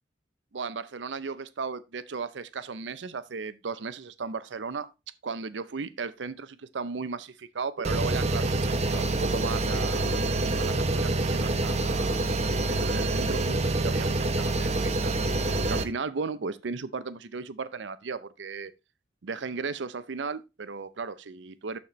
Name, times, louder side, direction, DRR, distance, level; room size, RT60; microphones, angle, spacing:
voice 1, 0.5-4.9 5.2-8.5 8.8-10.2 10.6-15.2 15.7-18.7 19.2-21.8, right 4 dB, 85° right, 0.6 m, -36 dB
sound 1, 7.8-15.8, right 2 dB, 35° right, 0.8 m, -26 dB
12.5 x 4.3 x 3.1 m
head